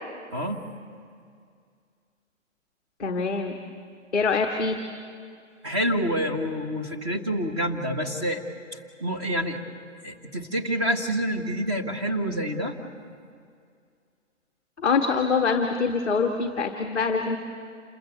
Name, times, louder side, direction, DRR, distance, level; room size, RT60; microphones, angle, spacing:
voice 1, 0.3-0.6 5.6-8.4 9.0-9.6 10.0-12.8, equal, 20° right, 3 dB, 1.7 m, -27 dB
voice 2, 3.0-3.6 4.1-4.8 14.8-17.4, left 5 dB, ahead, -7 dB, 0.9 m, -24 dB
28.0 x 21.0 x 8.2 m, 2.2 s
hypercardioid pair, 175°, 39 cm